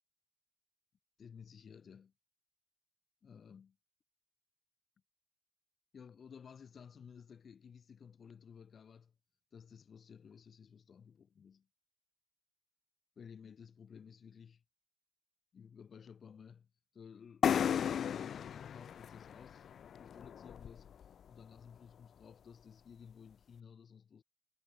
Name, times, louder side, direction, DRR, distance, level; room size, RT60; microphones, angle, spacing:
voice 1, 1.2-2.1 3.2-3.7 5.9-9.1 9.5-11.7 13.2-14.6 15.5-16.7 16.9-19.7 20.0-20.9 21.3-24.2, left 7 dB, 60° left, 2.9 m, -55 dB
sound 1, 17.4-21.1, left 8 dB, 80° left, 0.9 m, -35 dB
wide cardioid pair, 140°, 0 cm